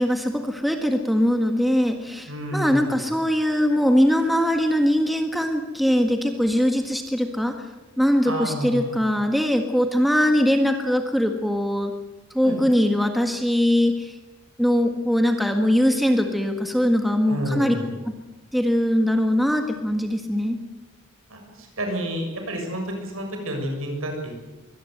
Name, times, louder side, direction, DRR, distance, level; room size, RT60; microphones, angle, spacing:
voice 1, 0.0-7.5 8.0-11.9 12.3-14.2 14.6-17.8 18.1-18.2 18.5-20.6, equal, ahead, 4 dB, 1.7 m, -21 dB
voice 2, 2.3-3.0 8.3-9.0 12.4-12.6 17.3-17.9 21.3-24.3, right 1 dB, 75° right, 3 dB, 6.8 m, -30 dB
23.5 x 18.0 x 8.0 m, 1.1 s
head